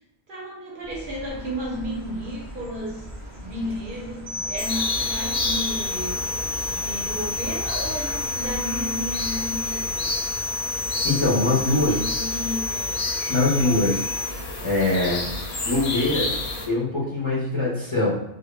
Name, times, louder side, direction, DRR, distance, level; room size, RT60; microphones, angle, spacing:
voice 1, 0.3-3.1 3.3-6.2 6.7-10.1 11.7-13.0, equal, 60° right, -3 dB, 0.7 m, -33 dB
Chirp tweet, 0.8-8.6, equal, 25° right, 0.4 m, -40 dB
sound 1, 4.3-14.3, left 3 dB, 85° right, 0.9 m, -30 dB
sound 2, 4.6-16.7, left 2 dB, 90° left, 0.9 m, -31 dB
voice 2, 11.0-12.0 13.3-14.1 14.6-15.3 15.7-16.3 16.7-18.2, left 2 dB, 40° left, -9 dB, 0.4 m, -22 dB
2.0 x 2.0 x 3.0 m, 0.78 s
omnidirectional pair, 1.2 m